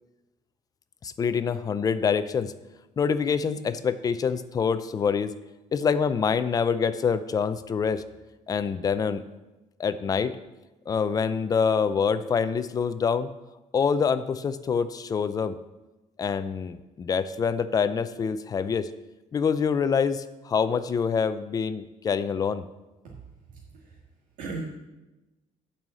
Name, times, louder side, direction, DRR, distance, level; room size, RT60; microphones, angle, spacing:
voice 1, 1.0-2.5 3.0-5.3 5.7-8.0 8.5-9.2 9.8-10.4 10.9-13.3 13.7-15.6 16.2-18.9 19.3-22.6, left 6 dB, 25° left, 12 dB, 0.4 m, -26 dB
voice 2, 23.5-24.0 24.4-24.7, right 3 dB, 85° right, -5 dB, 2.0 m, -37 dB
9.1 x 5.6 x 7.6 m, 1.1 s
cardioid pair, 170°, 14 cm